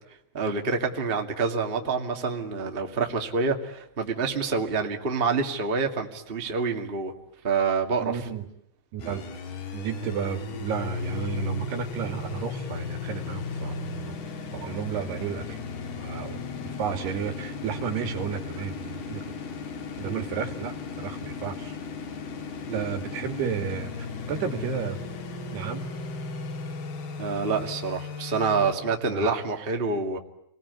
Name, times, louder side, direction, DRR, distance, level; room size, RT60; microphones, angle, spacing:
voice 1, 0.3-7.1 7.4-8.3 9.1-9.2 20.0-20.2 22.7-22.9 27.2-30.2, right 4 dB, 20° right, 3 dB, 1.6 m, -27 dB
voice 2, 8.0-8.4 8.9-9.2 9.7-14.2 14.5-15.6 16.0-19.2 20.0-21.8 22.7-25.0 25.5-25.9 29.1-29.5, right 7 dB, 90° right, 4 dB, 4.6 m, -32 dB
sound 1, 9.0-28.7, left 4 dB, 80° left, 4.7 m, -36 dB
30.0 x 20.5 x 9.5 m, 0.78 s
omnidirectional pair, 4.5 m